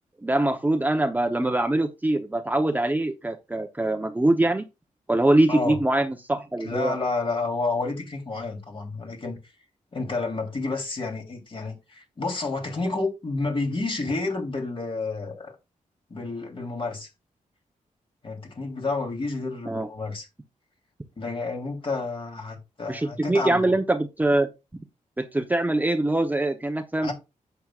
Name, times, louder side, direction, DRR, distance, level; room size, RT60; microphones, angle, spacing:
voice 1, 0.2-4.6 5.1-7.0 19.7-19.9 22.9-24.5 25.2-27.1, right 1 dB, 15° right, 0.9 m, -23 dB
voice 2, 6.6-9.4 9.9-15.5 16.1-17.1 18.2-20.3 21.2-23.7 27.0-27.1, left 3 dB, 40° left, 3.4 m, -30 dB
11.0 x 8.0 x 2.5 m
wide cardioid pair, 110°, 13 cm